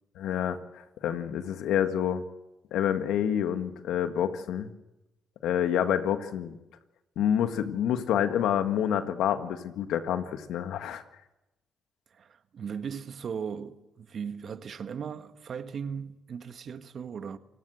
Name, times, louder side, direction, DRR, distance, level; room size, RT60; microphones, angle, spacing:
voice 1, 0.2-2.2 2.7-4.7 5.4-6.5 7.1-11.0, left 9 dB, 80° left, 1.7 m, -28 dB
voice 2, 12.1-17.4, right 7 dB, 60° right, 1.6 m, -37 dB
28.0 x 18.5 x 7.9 m
supercardioid pair, 60°, 0 cm